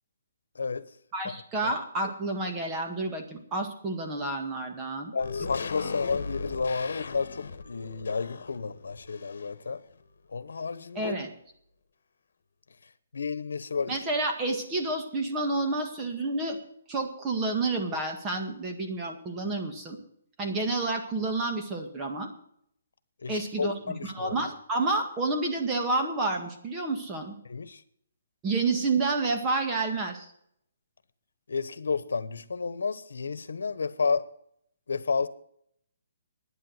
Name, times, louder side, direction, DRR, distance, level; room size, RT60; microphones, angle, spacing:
voice 1, 1.1-5.1 5.8-5.9 11.0-11.3 13.9-16.6 16.9-20.0 20.4-22.3 23.3-23.7 24.0-27.4 28.4-30.3, right 3 dB, 15° right, 1.8 m, -29 dB
voice 2, 5.1-9.8 10.3-11.2 13.1-14.0 23.2-24.4 27.5-27.8 31.5-34.3 34.9-35.3, left 5 dB, 90° left, 1.1 m, -31 dB
sound 1, 5.2-9.7 10.0-10.1, left 4 dB, 70° left, 1.5 m, -38 dB
11.0 x 9.7 x 7.9 m
hypercardioid pair, 165°, 0 cm